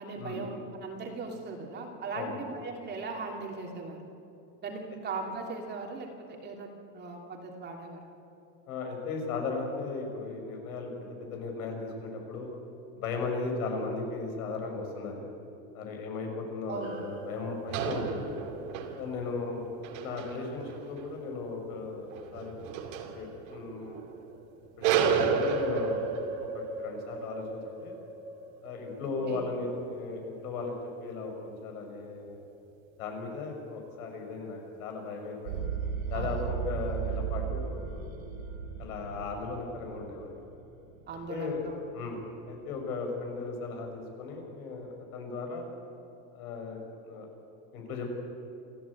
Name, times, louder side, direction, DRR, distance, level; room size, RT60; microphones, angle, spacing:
voice 1, 0.0-4.1 4.6-8.1 16.7-16.9 29.0-29.4 36.1-36.5 41.1-41.7 42.0-42.1, right 3 dB, 25° right, 2 dB, 2.8 m, -39 dB
voice 2, 8.7-12.5 13.0-15.2 15.7-18.4 19.0-19.7 20.0-22.5 23.0-24.0 24.8-28.0 28.6-30.7 31.0-32.4 33.0-35.6 36.1-38.0 38.8-40.4 41.3-41.6 41.9-45.7 46.3-46.8 47.0-47.3 47.7-48.1, left 3 dB, 80° left, 2 dB, 6.3 m, -36 dB
sound 1, 16.8-24.4 24.8-31.3, right 5 dB, 65° right, 2.9 m, -34 dB
sound 2, 35.4-42.4, right 7 dB, 80° right, 5.4 m, -36 dB
27.5 x 14.5 x 8.4 m, 2.7 s
supercardioid pair, 150°, 42 cm